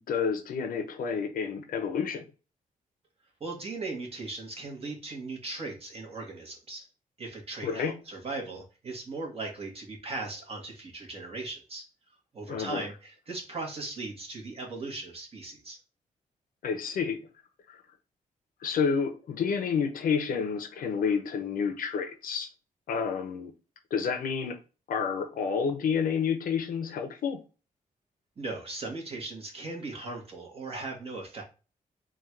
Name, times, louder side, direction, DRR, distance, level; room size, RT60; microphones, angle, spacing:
voice 1, 0.1-2.2 7.6-8.0 12.5-12.8 16.6-17.3 17.7-17.8 18.6-22.5 22.9-23.5 23.9-24.6 24.9-27.4, left 6 dB, 75° left, 0.8 m, -29 dB
voice 2, 3.4-6.9 7.2-11.8 12.3-15.8 28.4-31.4, right 3 dB, 40° right, 1.5 m, -38 dB
3.8 x 2.5 x 4.4 m
cardioid pair, 100°, 15 cm